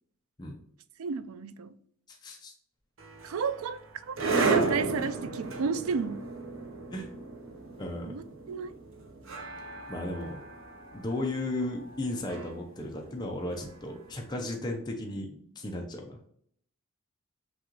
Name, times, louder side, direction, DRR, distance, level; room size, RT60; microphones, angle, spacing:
voice 1, 1.0-1.8 3.2-3.8 4.1-4.2 4.4-6.2 8.0-8.8, right 5 dB, 90° right, 0.4 m, -32 dB
voice 2, 2.1-2.5 6.9-7.1 7.8-8.1 9.9-10.4 10.9-16.2, left 1 dB, 20° left, 0.6 m, -35 dB
sound 1, 3.0-14.1, right 3 dB, 75° right, 0.9 m, -34 dB
6.0 x 2.4 x 3.0 m
head